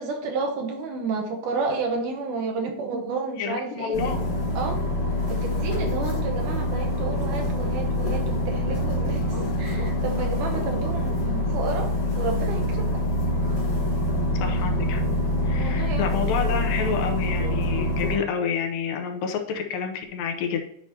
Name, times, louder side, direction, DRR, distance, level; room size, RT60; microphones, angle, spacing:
voice 1, 0.0-4.1 4.6-4.8 5.3-11.9 12.2-13.0 15.5-16.1, right 4 dB, 75° right, 3 dB, 1.9 m, -31 dB
voice 2, 3.4-4.2 14.3-15.0 15.4-20.6, left 6 dB, 75° left, 4 dB, 2.2 m, -29 dB
sound 1, 3.9-18.2, left 1 dB, 50° left, 4.3 m, -25 dB
sound 2, 6.9-8.3 9.2-11.2 13.4-13.8 14.1-15.3 16.0-17.2, equal, 30° left, 3.0 m, -42 dB
10.5 x 4.7 x 2.8 m, 0.70 s
omnidirectional pair, 4.5 m